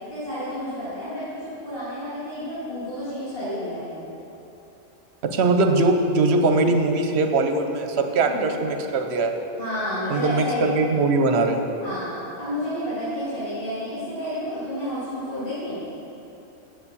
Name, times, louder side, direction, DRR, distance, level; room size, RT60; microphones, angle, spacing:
voice 1, 0.1-4.1 8.2-8.5 9.6-10.6 11.8-15.8, equal, 45° left, -14 dB, 2.7 m, -30 dB
voice 2, 5.2-9.3 10.1-11.7, right 3 dB, 60° right, 5 dB, 1.0 m, -21 dB
7.7 x 7.2 x 6.9 m, 3.0 s
omnidirectional pair, 1.3 m